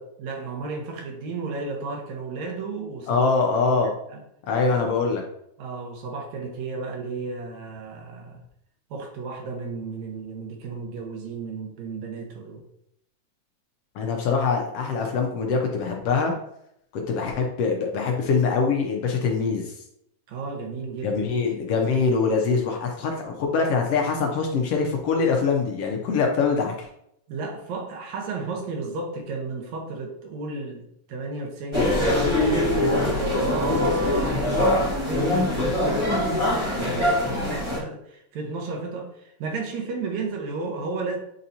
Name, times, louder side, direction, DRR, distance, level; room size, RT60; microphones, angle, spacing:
voice 1, 0.2-3.3 3.7-4.2 4.8-4.9 5.6-8.4 8.9-12.6 20.3-21.1 27.3-41.2, right 3 dB, 70° right, 1 dB, 2.4 m, -33 dB
voice 2, 3.1-3.9 4.5-5.2 13.9-16.3 16.9-19.7 21.0-26.9, left 4 dB, 70° left, 1 dB, 1.5 m, -23 dB
sound 1, 31.7-37.8, left 1 dB, 50° right, 0.3 m, -23 dB
8.5 x 4.0 x 2.8 m, 0.75 s
omnidirectional pair, 3.4 m